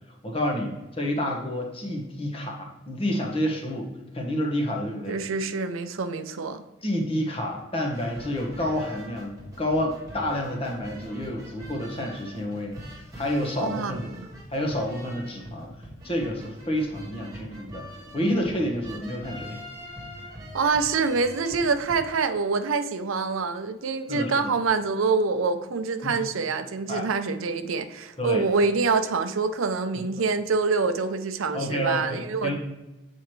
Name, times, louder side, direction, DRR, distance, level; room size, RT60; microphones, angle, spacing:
voice 1, 0.2-5.2 6.8-9.3 9.6-12.8 13.1-14.1 14.5-15.7 16.0-17.8 18.1-19.6 24.1-24.5 26.0-26.2 26.9-27.1 28.2-28.4 31.5-32.6, left 1 dB, 30° left, 1 dB, 1.2 m, -29 dB
voice 2, 5.1-6.6 13.6-14.3 20.5-32.6, right 4 dB, 85° right, 9 dB, 0.5 m, -26 dB
sound 1, 7.9-22.0, equal, 15° right, 1.5 m, -43 dB
8.0 x 4.5 x 3.1 m, 1.1 s
head